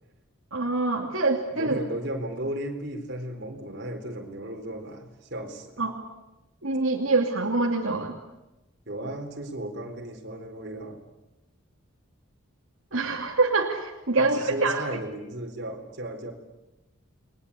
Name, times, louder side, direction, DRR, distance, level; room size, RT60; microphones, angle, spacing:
voice 1, 0.5-1.7 5.8-6.0 6.6-8.2 12.9-14.8, right 3 dB, 70° right, 0 dB, 2.7 m, -25 dB
voice 2, 1.5-5.9 8.9-11.0 14.2-16.3, right 1 dB, 55° right, 3 dB, 4.1 m, -35 dB
29.5 x 21.5 x 8.5 m, 1.0 s
head